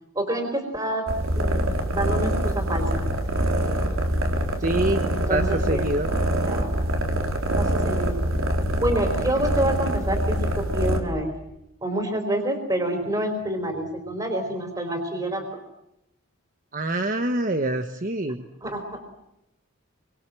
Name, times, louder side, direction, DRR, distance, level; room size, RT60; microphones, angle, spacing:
voice 1, 0.1-1.1 1.3-3.1 5.1-6.8 7.6-8.3 8.8-11.3 11.8-15.4 18.6-19.0, right 1 dB, 20° right, 3 dB, 4.1 m, -28 dB
sound 1, 1.1-11.0, right 1 dB, 75° right, 4.0 m, -25 dB
voice 2, 4.6-5.0 5.3-6.1 16.7-18.4, right 2 dB, 40° right, 7 dB, 1.2 m, -25 dB
28.5 x 24.5 x 7.7 m, 0.84 s
head